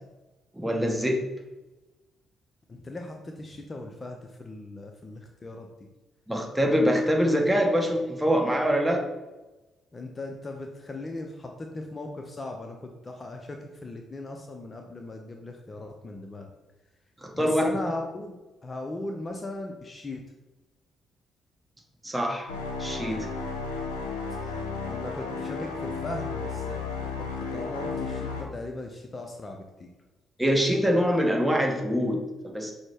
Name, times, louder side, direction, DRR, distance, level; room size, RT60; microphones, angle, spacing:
voice 1, 0.5-1.3 6.3-9.1 17.2-17.6 22.0-22.5 22.8-23.3 30.4-32.7, equal, 10° right, 1 dB, 0.9 m, -24 dB
voice 2, 2.7-5.7 9.9-16.5 17.3-18.4 18.6-20.2 24.4-24.6 24.9-26.8 27.2-29.9, left 2 dB, 30° left, 3 dB, 0.5 m, -38 dB
sound 1, 22.5-28.4, left 4 dB, 85° left, 0.5 m, -33 dB
6.0 x 2.0 x 3.3 m, 1.1 s
figure-of-eight pair, 40°, 0 cm